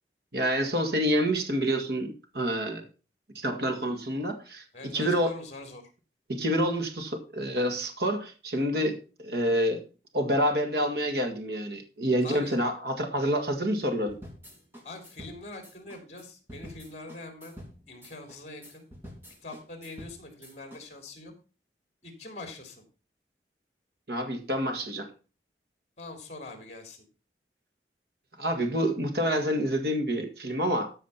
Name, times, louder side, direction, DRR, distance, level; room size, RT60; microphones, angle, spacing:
voice 1, 0.3-2.8 3.4-4.6 4.9-5.3 6.3-9.8 10.1-14.2 24.1-25.1 28.4-30.9, equal, 65° right, 5 dB, 2.0 m, -28 dB
voice 2, 4.7-5.8 12.2-12.5 14.8-17.5 17.9-18.8 19.4-21.3 22.0-22.8 26.0-27.0, left 2 dB, 40° left, 5 dB, 3.5 m, -43 dB
sound 1, 14.1-20.8, equal, 15° right, 2.8 m, -48 dB
14.0 x 5.0 x 5.8 m, 0.35 s
head